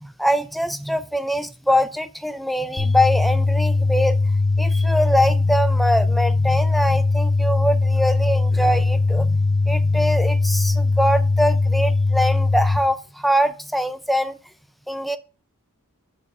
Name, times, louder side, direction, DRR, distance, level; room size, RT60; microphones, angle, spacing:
voice 1, 0.0-4.2 4.6-14.4 14.9-15.2, equal, ahead, 0.4 m, -23 dB
sound 1, 2.8-12.8, left 3 dB, 20° left, 0.9 m, -20 dB
7.1 x 4.1 x 5.3 m
head